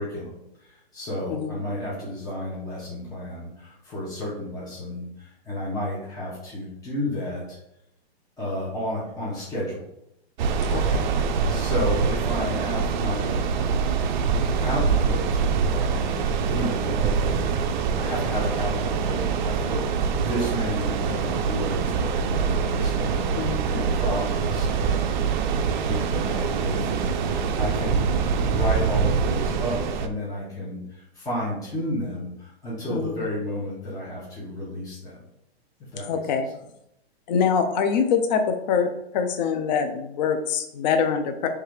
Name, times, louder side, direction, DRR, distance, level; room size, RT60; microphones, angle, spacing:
voice 1, 0.0-7.6 8.4-9.9 10.7-13.4 14.6-17.4 17.9-25.3 25.9-28.0 28.4-35.2 35.9-36.2, left 1 dB, 10° left, -7 dB, 1.2 m, -32 dB
sound 1, 10.4-30.1, right 6 dB, 45° right, 0.5 m, -24 dB
voice 2, 10.7-11.1 23.4-23.7 32.9-33.2 36.1-36.5 37.3-41.5, left 6 dB, 45° left, 6 dB, 0.5 m, -24 dB
3.3 x 3.3 x 4.8 m, 0.81 s
hypercardioid pair, 145°, 32 cm